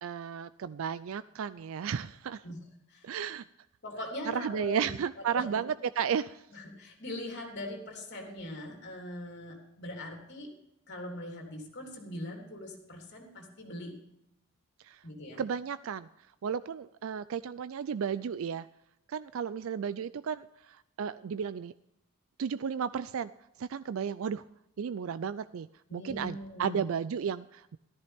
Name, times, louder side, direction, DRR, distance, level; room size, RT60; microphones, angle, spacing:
voice 1, 0.0-2.4 3.0-3.4 4.3-6.4 14.9-15.0 15.4-16.1 16.4-18.7 19.1-20.5 21.0-21.7 22.4-23.3 23.6-24.4 24.8-25.7 25.9-27.8, right 7 dB, 70° right, 15 dB, 0.4 m, -33 dB
voice 2, 3.8-4.8 5.4-5.6 6.5-10.5 10.9-14.0 15.0-15.4 25.9-26.8, left 1 dB, 55° left, 1 dB, 3.5 m, -41 dB
14.5 x 13.5 x 3.5 m, 0.82 s
head